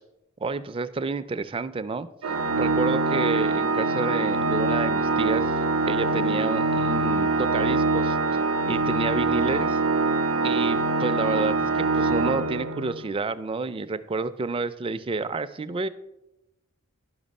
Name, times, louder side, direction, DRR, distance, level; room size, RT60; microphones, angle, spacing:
voice 1, 0.4-2.1 2.6-5.5 5.9-8.2 8.7-9.8 10.4-15.9, right 3 dB, 25° right, 12 dB, 0.3 m, -29 dB
Organ, 2.2-13.1, right 3 dB, 65° right, 0.6 m, -24 dB
11.0 x 5.7 x 5.3 m, 0.92 s
head